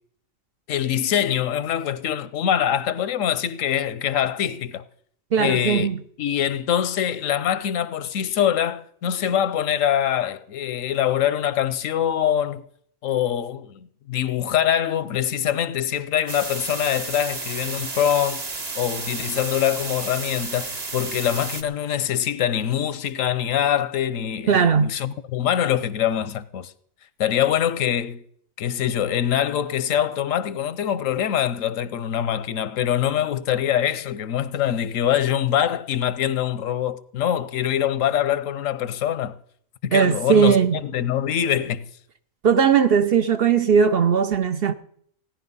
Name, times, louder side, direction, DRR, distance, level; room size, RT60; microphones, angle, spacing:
voice 1, 0.7-4.8 5.4-5.9 6.2-12.6 13.0-18.4 18.7-26.7 27.2-28.2 28.6-39.4 39.8-41.8, left 10 dB, 80° left, 1.1 m, -24 dB
voice 2, 5.3-6.0 24.5-24.9 39.9-40.8 42.4-44.7, right 7 dB, 55° right, 0.8 m, -18 dB
sound 1, 16.3-21.6, right 3 dB, 35° right, 1.0 m, -32 dB
17.0 x 10.5 x 5.4 m
omnidirectional pair, 1.4 m